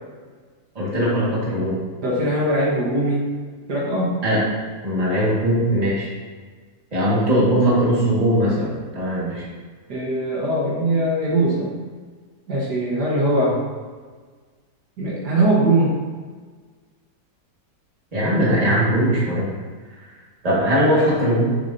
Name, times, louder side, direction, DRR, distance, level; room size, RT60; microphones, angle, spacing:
voice 1, 0.8-1.8 4.2-4.4 4.8-6.1 6.9-9.5 18.1-19.5 20.4-21.6, equal, 20° right, -7 dB, 1.9 m, -20 dB
voice 2, 2.0-3.2 3.7-4.2 9.9-11.8 12.5-13.6 15.0-15.9, right 1 dB, 75° right, -5 dB, 2.0 m, -21 dB
7.1 x 7.0 x 2.8 m, 1.5 s
omnidirectional pair, 1.8 m